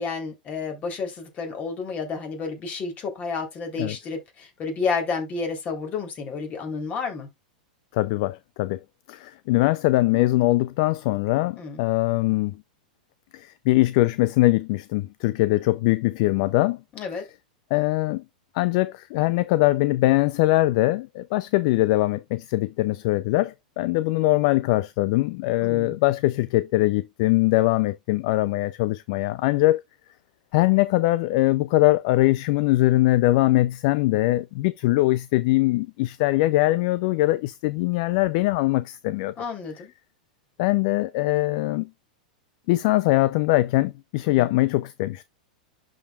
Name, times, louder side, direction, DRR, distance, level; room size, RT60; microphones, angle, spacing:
voice 1, 0.0-7.3 11.6-11.9 16.9-17.2 25.6-26.0 39.4-39.9 44.3-44.5, left 4 dB, 35° left, 3.5 m, -31 dB
voice 2, 7.9-8.8 9.1-12.6 13.3-16.8 17.7-18.2 18.5-29.8 30.5-39.3 40.6-41.9 42.7-45.2, left 18 dB, 55° left, 0.5 m, -22 dB
11.5 x 5.0 x 2.4 m
hypercardioid pair, 100°, 4 cm